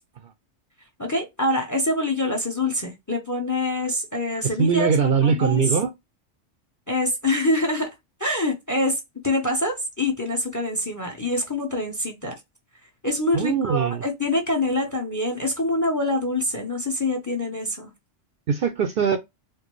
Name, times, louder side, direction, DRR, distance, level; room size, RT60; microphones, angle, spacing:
voice 1, 1.0-4.9 5.2-5.6 6.9-7.9 8.2-12.4 13.0-17.9, left 1 dB, 20° left, 0.7 m, -25 dB
voice 2, 4.4-5.9 13.3-14.0 18.5-19.2, right 6 dB, 60° right, 0.7 m, -21 dB
4.5 x 2.1 x 3.0 m
omnidirectional pair, 1.2 m